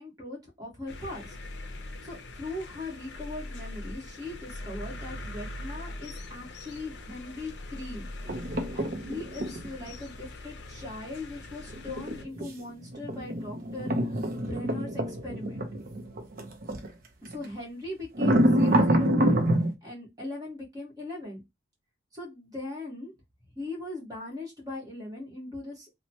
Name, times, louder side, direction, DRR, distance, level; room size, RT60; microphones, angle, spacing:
voice 1, 0.0-1.3 2.0-8.1 8.7-15.6 17.2-19.4 19.8-21.4 22.1-23.1 23.5-25.9, left 2 dB, 20° right, -3 dB, 1.2 m, -39 dB
sound 1, 0.9-12.2, left 2 dB, 60° left, 0.5 m, -42 dB
sound 2, 8.3-9.7 11.7-16.9 17.3-17.5 18.1-19.7, right 1 dB, 50° right, 0.6 m, -26 dB
3.0 x 2.1 x 2.7 m, 0.19 s
head